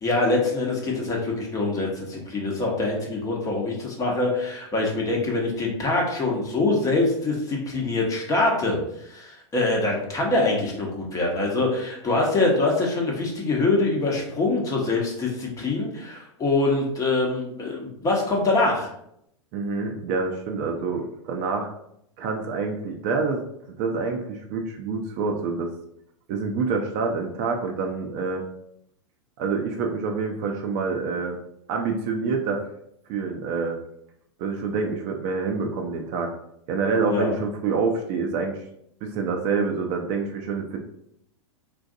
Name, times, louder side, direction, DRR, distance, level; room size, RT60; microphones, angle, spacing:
voice 1, 0.0-8.8 9.1-18.9 37.1-37.3, left 2 dB, 20° left, -1 dB, 0.9 m, -24 dB
voice 2, 19.5-21.7 22.2-23.4 23.8-25.7 26.3-28.4 29.4-31.4 31.7-32.7 33.1-33.7 34.4-36.3 36.7-38.6 39.0-40.8, right 4 dB, 40° right, 3 dB, 0.5 m, -27 dB
3.7 x 2.5 x 2.6 m, 0.74 s
hypercardioid pair, 115°, 16 cm